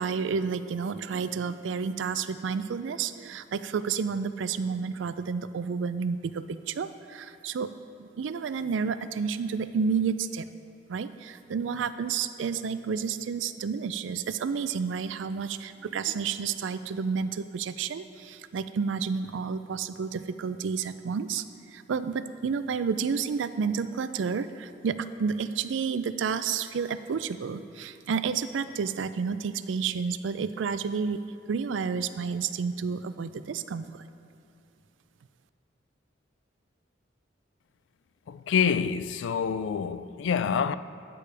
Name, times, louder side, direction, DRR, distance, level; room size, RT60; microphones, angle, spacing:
voice 1, 0.0-7.7 8.0-10.5 10.9-21.4 21.7-31.2 31.5-34.0, right 6 dB, 80° right, 0.4 m, -30 dB
voice 2, 38.3-40.7, left 7 dB, 75° left, 0.3 m, -27 dB
13.0 x 8.3 x 3.4 m
head